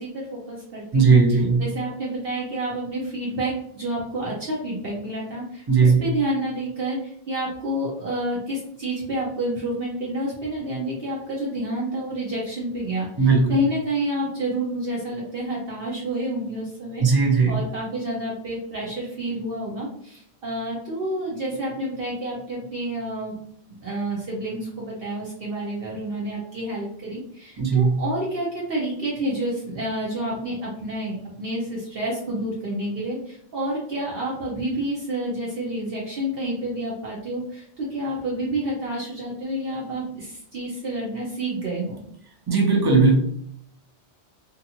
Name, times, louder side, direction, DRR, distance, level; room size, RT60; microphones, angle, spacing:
voice 1, 0.0-1.2 1.6-17.0 17.5-23.4 23.7-42.0, right 1 dB, 60° right, -5 dB, 0.9 m, -29 dB
voice 2, 0.9-1.7 5.7-6.0 13.2-13.5 17.0-17.6 27.6-28.0 42.5-43.1, right 4 dB, 30° right, 1 dB, 0.4 m, -17 dB
2.5 x 2.5 x 2.7 m, 0.67 s
omnidirectional pair, 1.1 m